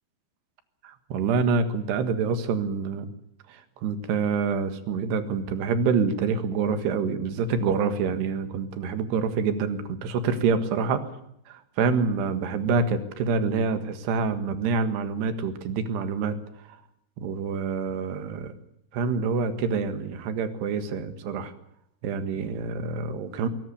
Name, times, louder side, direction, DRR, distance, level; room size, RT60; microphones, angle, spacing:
voice 1, 0.8-3.1 3.5-11.1 11.5-16.4 17.2-18.5 18.9-21.5 22.0-23.5, right 5 dB, 85° right, 10 dB, 3.8 m, -26 dB
22.0 x 18.0 x 8.3 m, 0.75 s
omnidirectional pair, 4.7 m